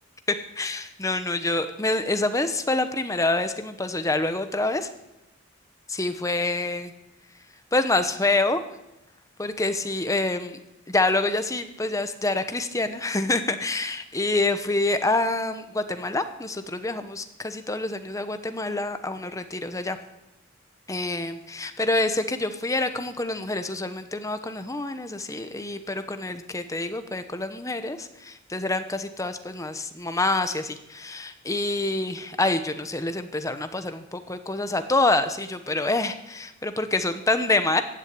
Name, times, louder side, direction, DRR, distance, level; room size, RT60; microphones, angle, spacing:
voice 1, 0.5-4.9 5.9-6.9 7.7-8.6 9.4-10.6 10.9-20.0 20.9-37.8, left 2 dB, 15° left, 9 dB, 1.0 m, -26 dB
15.5 x 9.9 x 8.6 m, 0.94 s
head